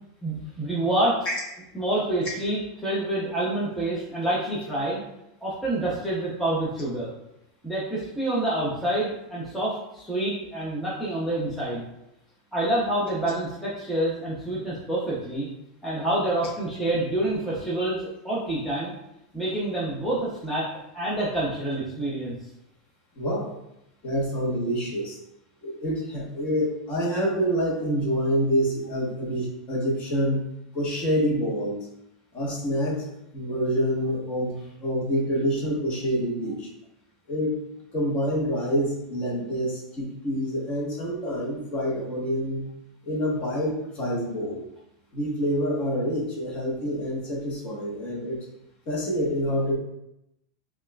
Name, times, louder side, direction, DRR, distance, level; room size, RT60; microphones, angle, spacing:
voice 1, 0.2-1.2 1.7-5.0 5.4-7.1 7.6-11.8 12.5-15.5 15.8-18.9 19.3-20.7 20.9-22.4, right 1 dB, ahead, -8 dB, 0.5 m, -27 dB
voice 2, 23.1-23.5 24.0-25.2 25.6-30.4 30.7-31.9 32.3-33.0 33.3-36.7 37.3-37.6 37.9-42.7 43.0-44.6 45.1-48.4 48.9-49.7, equal, 30° left, -4 dB, 1.0 m, -27 dB
5.2 x 2.3 x 2.2 m, 0.85 s
supercardioid pair, 160°, 4 cm